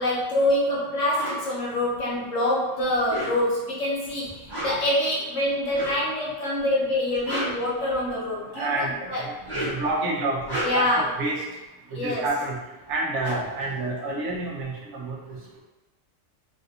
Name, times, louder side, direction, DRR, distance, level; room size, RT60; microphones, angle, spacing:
voice 1, 0.0-8.7 9.1-9.4 10.6-11.1 11.9-12.2, left 1 dB, 75° left, -5 dB, 1.3 m, -25 dB
sound 1, 1.1-1.4 2.9-3.7 4.4-4.9 5.7-6.1 7.0-8.3 9.3-9.9 10.3-11.0 12.6-12.7 12.9-14.6, equal, 20° right, 1.2 m, -33 dB
voice 2, 8.5-9.3 9.6-11.4 11.9-12.6 12.9-15.6, right 2 dB, 70° right, -1 dB, 0.9 m, -29 dB
3.3 x 2.5 x 2.7 m, 1.1 s
omnidirectional pair, 1.3 m